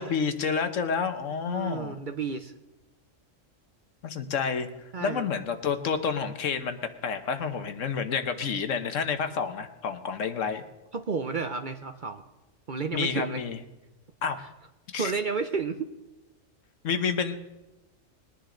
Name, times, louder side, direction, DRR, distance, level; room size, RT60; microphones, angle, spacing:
voice 1, 0.0-2.0 4.0-4.7 5.0-6.8 7.0-10.6 12.9-13.6 14.2-14.4 14.9-15.1 16.8-17.4, left 6 dB, 70° left, 9 dB, 1.3 m, -29 dB
voice 2, 1.4-2.5 4.9-5.3 10.9-12.2 12.7-13.4 15.0-15.9, right 5 dB, 45° right, 8 dB, 0.7 m, -31 dB
21.0 x 10.0 x 3.8 m, 1.0 s
omnidirectional pair, 1.4 m